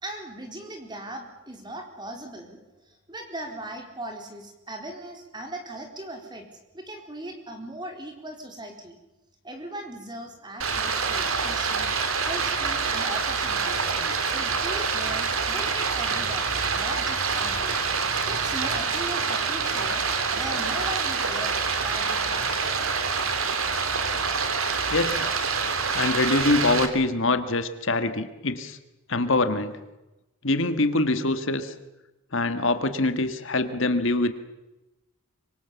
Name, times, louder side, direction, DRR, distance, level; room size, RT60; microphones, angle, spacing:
voice 1, 0.0-6.4 6.7-9.0 9.4-11.9 12.2-13.9 14.3-17.8 18.3-20.0 20.3-21.5 21.8-22.6, right 1 dB, 20° right, 4 dB, 4.1 m, -38 dB
Stream, 10.6-26.9, right 5 dB, 75° right, 3.0 m, -26 dB
voice 2, 24.9-25.3 25.9-28.8 29.1-29.7 30.4-31.7 32.3-34.3, left 2 dB, 65° left, 9 dB, 1.7 m, -24 dB
25.5 x 24.5 x 7.1 m, 1.0 s
head